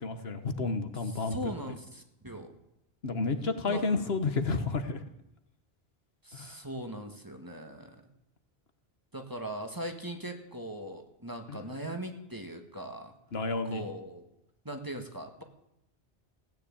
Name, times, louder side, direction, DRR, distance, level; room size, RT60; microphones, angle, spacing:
voice 1, 0.0-1.4 3.0-5.0 6.3-6.5 11.5-11.6 13.3-13.8, left 3 dB, 75° left, 9 dB, 1.5 m, -31 dB
voice 2, 0.9-2.5 3.7-4.2 6.2-8.0 9.1-13.1 13.6-14.3 14.7-15.4, right 1 dB, 20° right, 4 dB, 1.7 m, -40 dB
16.0 x 9.9 x 8.6 m, 0.82 s
omnidirectional pair, 1.0 m